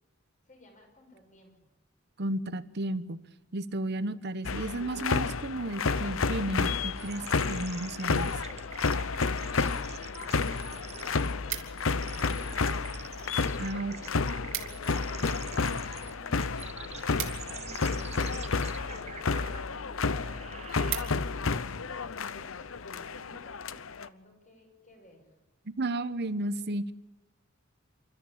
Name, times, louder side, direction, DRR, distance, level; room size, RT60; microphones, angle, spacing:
voice 1, 0.4-1.5 14.0-17.9 18.7-25.3, left 1 dB, 40° left, 3 dB, 5.9 m, -56 dB
voice 2, 2.2-3.2 3.5-8.4 13.6-13.9 25.8-26.9, right 1 dB, 55° right, 14 dB, 1.0 m, -33 dB
sound 1, 4.4-24.1, left 4 dB, 85° left, 0.8 m, -31 dB
sound 2, 7.0-21.5, right 6 dB, 35° right, 0.8 m, -46 dB
sound 3, 11.5-12.1 12.8-13.3 13.6-13.7 14.0-14.1 14.3-14.9 15.3-18.1 18.9-19.2 19.7-19.8 20.1-20.2 20.5-21.5 22.0-22.2, right 12 dB, 85° right, 2.9 m, -40 dB
27.5 x 13.5 x 8.7 m, 0.99 s
head